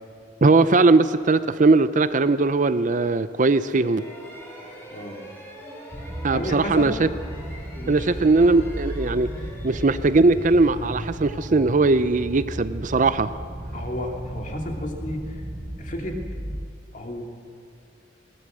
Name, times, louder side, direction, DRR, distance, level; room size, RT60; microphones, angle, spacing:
voice 1, 0.4-4.0 6.2-7.1 7.9-9.3 9.6-13.3, right 3 dB, 40° right, 13 dB, 0.5 m, -19 dB
sound 1, 3.7-12.4, equal, 15° left, 4.1 m, -45 dB
voice 2, 4.9-5.2 6.3-6.9 7.8-8.1 13.7-15.3 15.8-16.2 16.9-17.2, left 1 dB, 40° left, 2 dB, 2.7 m, -32 dB
sound 2, 5.9-16.7, right 1 dB, 20° right, 1.1 m, -35 dB
20.5 x 17.5 x 7.5 m, 2.5 s
head